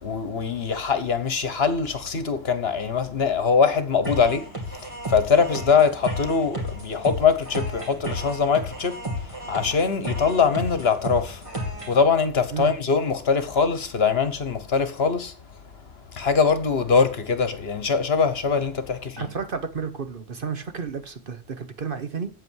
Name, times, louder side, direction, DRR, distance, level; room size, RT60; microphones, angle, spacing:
voice 1, 0.0-11.5 11.9-15.3 16.1-19.3, left 5 dB, 55° left, 1.3 m, -22 dB
sound 1, 4.0-12.0, equal, 25° right, 2.4 m, -33 dB
voice 2, 19.2-22.3, right 6 dB, 50° right, 1.0 m, -31 dB
8.3 x 7.9 x 4.6 m
omnidirectional pair, 1.3 m